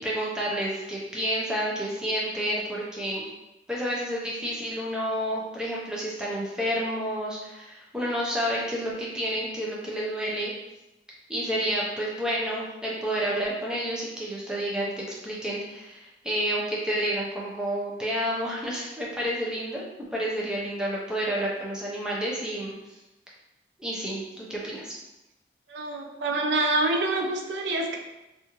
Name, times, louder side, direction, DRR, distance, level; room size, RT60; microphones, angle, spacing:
voice 1, 0.0-3.2 3.7-10.5 11.3-22.7 23.8-24.9, equal, 5° right, -5 dB, 0.5 m, -30 dB
voice 2, 25.7-28.0, right 2 dB, 80° right, 2 dB, 0.4 m, -26 dB
2.5 x 2.4 x 2.9 m, 0.97 s
head